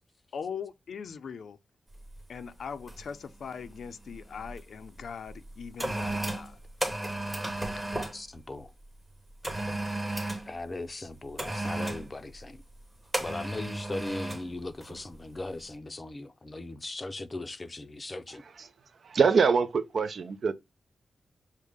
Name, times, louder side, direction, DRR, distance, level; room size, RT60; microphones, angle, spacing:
voice 1, 0.3-1.6 2.3-6.6, left 6 dB, 75° left, 0.5 m, -40 dB
sound 1, 2.0-2.2 2.9-3.2 3.4-4.6 5.3-8.2 9.4-10.5 11.4-12.1 13.1-14.5 14.8-15.0, right 1 dB, 10° right, 0.9 m, -34 dB
voice 2, 8.1-8.7 10.5-12.6 13.2-18.4, left 2 dB, 25° left, 0.5 m, -38 dB
voice 3, 19.0-20.5, right 5 dB, 60° right, 0.5 m, -24 dB
6.4 x 2.1 x 3.4 m
wide cardioid pair, 145°, 0 cm